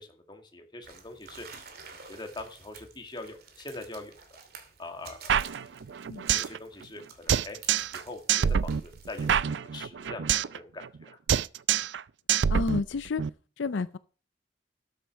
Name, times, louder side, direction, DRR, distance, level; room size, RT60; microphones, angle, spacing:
voice 1, 0.0-1.5 1.9-4.4 4.8-7.6 7.9-11.2, left 2 dB, 25° left, 2.1 m, -44 dB
sound 1, 0.8-9.3, right 5 dB, 55° right, 2.5 m, -51 dB
sound 2, 5.3-6.6 6.8-6.9 7.3-8.0 8.3-10.6 10.8-11.0 11.3-12.0 12.3-13.3, right 8 dB, 70° right, 0.4 m, -26 dB
voice 2, 12.5-13.2 13.6-14.0, left 4 dB, 80° left, 0.5 m, -30 dB
13.0 x 8.0 x 4.6 m
head